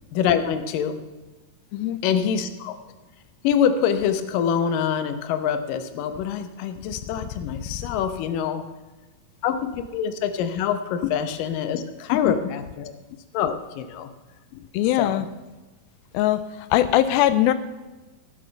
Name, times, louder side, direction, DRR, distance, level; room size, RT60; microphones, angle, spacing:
voice 1, 0.1-1.0 2.0-2.8 3.4-8.6 9.4-12.9 13.3-14.1 15.0-15.2, left 8 dB, 75° left, 9 dB, 2.5 m, -25 dB
voice 2, 14.5-15.3 16.1-17.5, left 13 dB, 90° left, 12 dB, 2.4 m, -21 dB
17.5 x 7.3 x 5.7 m, 1.2 s
omnidirectional pair, 4.1 m